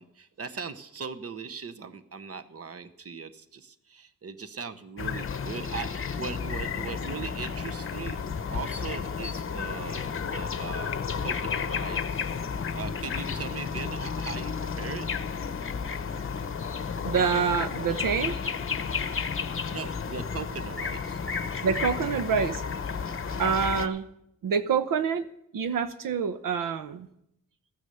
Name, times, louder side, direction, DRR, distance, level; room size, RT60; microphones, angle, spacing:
voice 1, 0.0-8.2 8.5-12.3 12.7-15.1 19.7-21.2, right 5 dB, 45° right, 10 dB, 1.0 m, -39 dB
sound 1, 5.0-23.9, left 6 dB, 40° left, 0.8 m, -32 dB
voice 2, 17.0-18.4 19.1-19.2 21.6-22.6 23.4-24.1 24.4-27.1, right 6 dB, 80° right, 11 dB, 0.8 m, -27 dB
15.0 x 9.7 x 6.9 m, 0.78 s
wide cardioid pair, 115°, 33 cm